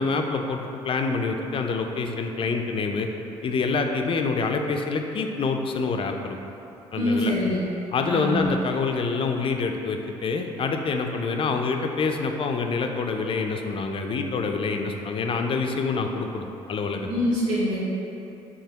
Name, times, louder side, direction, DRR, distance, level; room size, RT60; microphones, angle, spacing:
voice 1, 0.0-3.1 3.4-6.4 6.9-7.3 7.9-17.1, left 4 dB, 40° left, 4 dB, 0.4 m, -26 dB
voice 2, 7.0-7.6 8.1-8.5 17.1-17.8, left 1 dB, 85° right, -8 dB, 1.1 m, -24 dB
4.6 x 2.8 x 2.8 m, 2.9 s
hypercardioid pair, 65°, 14 cm